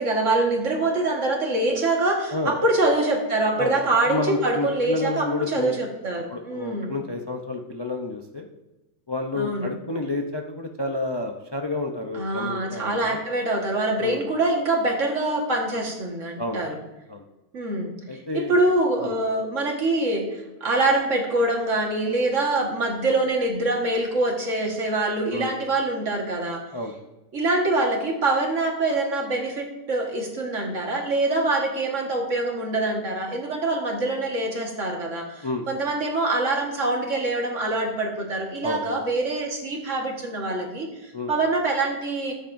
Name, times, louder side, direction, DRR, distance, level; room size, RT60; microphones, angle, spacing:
voice 1, 0.0-7.0 9.3-9.7 12.1-16.8 17.5-17.9 18.3-26.6 27.3-42.3, right 2 dB, 60° right, 1 dB, 2.0 m, -24 dB
voice 2, 4.0-5.7 6.3-8.5 9.1-13.2 14.0-14.2 16.4-16.6 17.1-17.2 18.1-18.5 19.0-19.2 25.3-25.5 26.7-27.0 35.4-35.7 38.6-39.0 41.1-41.3, left 2 dB, 30° left, 2 dB, 0.5 m, -30 dB
13.5 x 8.9 x 2.6 m, 1.0 s
omnidirectional pair, 1.4 m